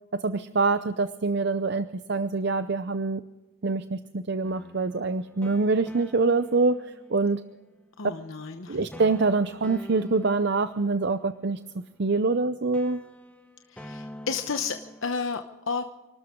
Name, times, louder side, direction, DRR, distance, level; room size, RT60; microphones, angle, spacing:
voice 1, 0.1-3.2 3.6-7.4 8.7-11.6 12.0-13.0, right 3 dB, 55° right, 12 dB, 0.6 m, -25 dB
sound 1, 4.4-7.6 8.9-12.4 12.7-15.2, left 1 dB, 5° left, 1.1 m, -47 dB
voice 2, 8.0-8.9 13.7-15.8, left 5 dB, 70° left, 7 dB, 0.9 m, -32 dB
29.5 x 13.0 x 3.8 m, 1.2 s
head